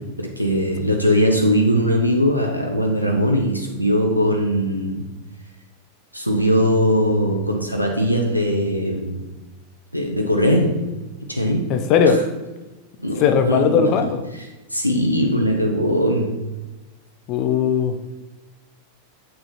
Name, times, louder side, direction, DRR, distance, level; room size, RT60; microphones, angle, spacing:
voice 1, 0.2-5.1 6.1-9.3 9.9-10.9 11.3-11.7 13.0-14.1 14.7-16.4, equal, 90° right, 1 dB, 0.9 m, -20 dB
voice 2, 11.7-12.2 13.2-14.2 17.3-18.1, left 6 dB, 40° left, 8 dB, 0.7 m, -18 dB
7.3 x 5.7 x 4.2 m, 1.1 s
figure-of-eight pair, 90°, 0 cm